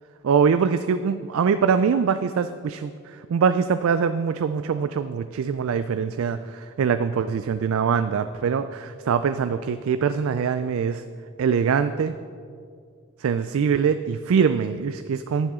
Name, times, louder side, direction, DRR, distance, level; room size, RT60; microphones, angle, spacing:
voice 1, 0.2-2.9 3.3-11.0 11.4-12.1 13.2-15.5, right 6 dB, 75° right, 11 dB, 0.3 m, -23 dB
11.0 x 10.5 x 3.6 m, 2.2 s
head